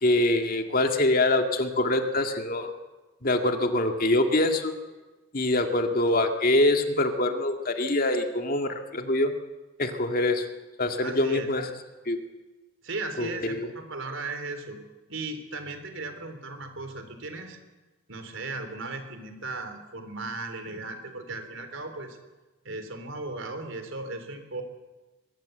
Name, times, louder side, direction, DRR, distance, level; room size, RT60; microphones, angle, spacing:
voice 1, 0.0-2.7 3.2-4.7 5.3-9.3 9.8-10.5 10.8-11.7 12.1-12.2 13.2-13.7, left 1 dB, 45° left, 5 dB, 2.1 m, -24 dB
voice 2, 11.0-11.5 12.8-14.8 15.1-17.6 18.1-22.2 22.6-24.6, right 3 dB, 65° right, 7 dB, 3.7 m, -36 dB
23.0 x 22.0 x 7.9 m, 1.2 s
head